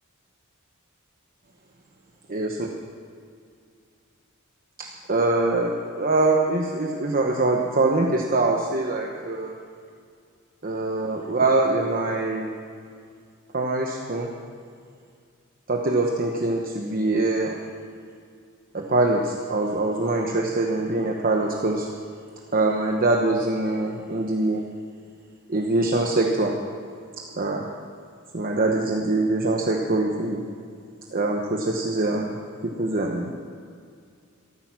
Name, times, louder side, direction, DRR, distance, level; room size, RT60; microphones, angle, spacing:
voice 1, 4.8-9.5 10.6-12.5 13.5-14.3 15.7-17.6 18.7-21.9 22.5-24.6 25.5-26.6 27.4-27.7 28.3-30.4 31.1-32.3 32.6-33.3, right 2 dB, 40° right, 1 dB, 1.0 m, -23 dB
13.5 x 13.5 x 6.1 m, 2.2 s
head